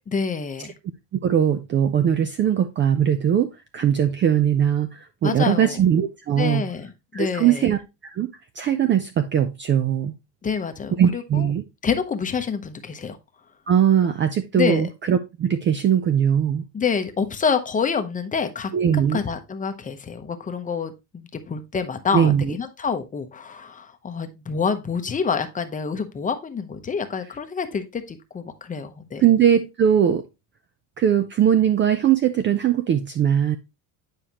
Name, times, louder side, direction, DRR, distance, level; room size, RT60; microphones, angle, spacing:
voice 1, 0.1-0.7 5.2-5.8 6.4-7.7 10.4-11.5 11.8-13.2 14.5-14.8 16.7-29.2, left 6 dB, 20° left, 0.7 m, -27 dB
voice 2, 1.1-6.6 7.1-8.3 8.6-10.1 11.0-11.6 13.7-16.6 18.7-19.2 22.1-22.5 29.2-30.2 31.0-33.6, right 9 dB, 30° right, 0.4 m, -20 dB
9.1 x 4.9 x 2.8 m
cardioid pair, 135°, 43 cm